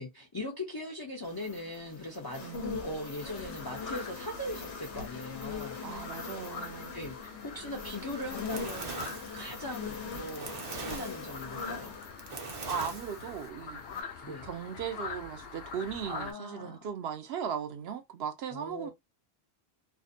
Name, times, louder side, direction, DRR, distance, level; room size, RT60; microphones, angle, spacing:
voice 1, 0.0-5.8 6.9-12.0 14.2-14.4 16.0-16.8 18.5-18.9, left 1 dB, 35° left, 0.4 m, -40 dB
sound 1, 1.2-13.4 13.8-14.0, left 4 dB, 85° left, 1.0 m, -42 dB
sound 2, 3.2-16.3, left 4 dB, 65° left, 0.8 m, -44 dB
voice 2, 5.8-6.9 12.7-13.8 14.2-18.9, right 8 dB, 70° right, 0.8 m, -37 dB
Fire, 8.0-13.5, right 4 dB, 45° right, 0.5 m, -42 dB
2.4 x 2.1 x 2.5 m
omnidirectional pair, 1.1 m